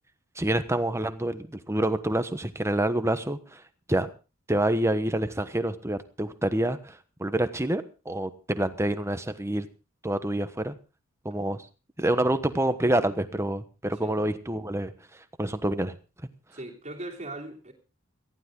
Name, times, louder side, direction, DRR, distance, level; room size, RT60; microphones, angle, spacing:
voice 1, 0.3-3.6 3.9-4.1 4.5-9.7 10.0-10.8 11.2-11.7 12.0-14.9 15.4-16.0, right 1 dB, 15° right, 1.2 m, -27 dB
voice 2, 16.5-17.7, right 2 dB, 30° right, 3.1 m, -39 dB
18.0 x 14.5 x 3.8 m
head